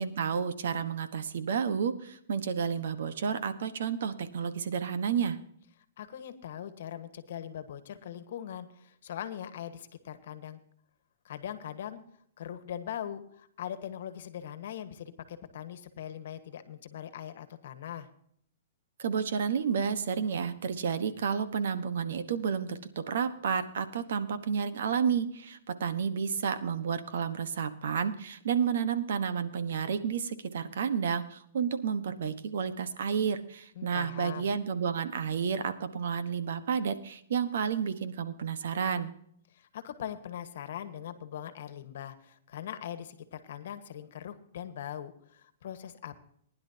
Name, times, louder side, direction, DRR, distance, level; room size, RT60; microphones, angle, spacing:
voice 1, 0.0-5.4 19.0-39.1, right 7 dB, 70° right, 11 dB, 1.2 m, -31 dB
voice 2, 6.0-10.6 11.2-12.0 12.4-18.1 33.7-34.5 39.5-46.3, left 10 dB, 60° left, 11 dB, 1.4 m, -41 dB
19.5 x 10.5 x 2.9 m, 0.65 s
hypercardioid pair, 155°, 0 cm